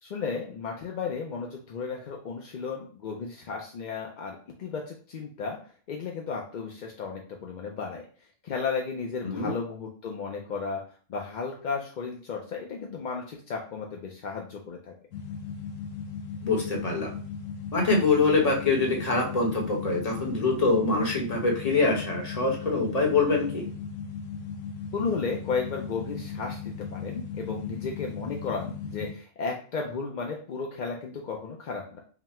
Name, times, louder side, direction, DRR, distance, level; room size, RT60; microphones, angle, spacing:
voice 1, 0.0-5.6 5.9-8.0 8.4-10.8 11.1-14.9 24.9-32.0, left 5 dB, 55° left, 0 dB, 0.5 m, -34 dB
sound 1, 15.1-29.1, left 6 dB, 85° left, 1.1 m, -37 dB
voice 2, 16.4-17.1 17.7-23.6, left 3 dB, 30° left, -1 dB, 1.0 m, -24 dB
4.1 x 2.1 x 4.2 m, 0.43 s
omnidirectional pair, 1.3 m